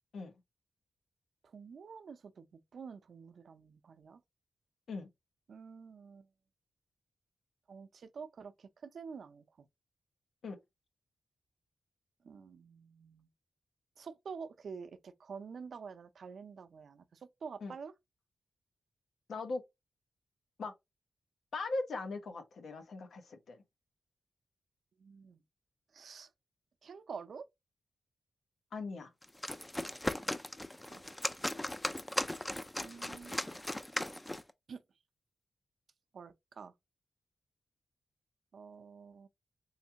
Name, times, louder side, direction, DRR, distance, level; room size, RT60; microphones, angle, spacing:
voice 1, 1.4-4.2 5.5-6.3 7.7-9.4 12.2-13.3 14.0-17.9 25.0-25.4 25.9-26.3 26.8-27.5 30.2-30.3 30.9-31.4 32.8-33.6 34.7-34.8 36.1-36.7 38.5-39.3, right 5 dB, 75° right, 0.5 m, -48 dB
voice 2, 19.3-19.6 20.6-20.7 21.5-23.6 28.7-29.1, left 3 dB, 85° left, 0.8 m, -39 dB
sound 1, 29.2-34.5, left 1 dB, 15° left, 0.4 m, -38 dB
3.5 x 3.2 x 2.8 m
cardioid pair, 85°, 0 cm